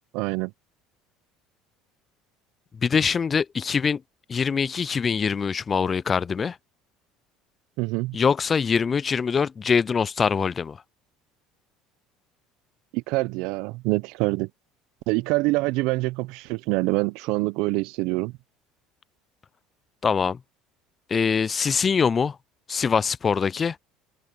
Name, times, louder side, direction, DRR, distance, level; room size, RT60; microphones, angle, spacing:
voice 1, 0.1-0.5 7.8-8.2 12.9-14.5 15.1-18.3, right 23 dB, 70° right, 0.8 m, -25 dB
voice 2, 2.8-4.0 4.3-6.6 8.1-10.8 20.0-20.4 21.1-22.4 22.7-23.8, left 6 dB, 30° left, 0.4 m, -23 dB
open air
supercardioid pair, 85°, 0 cm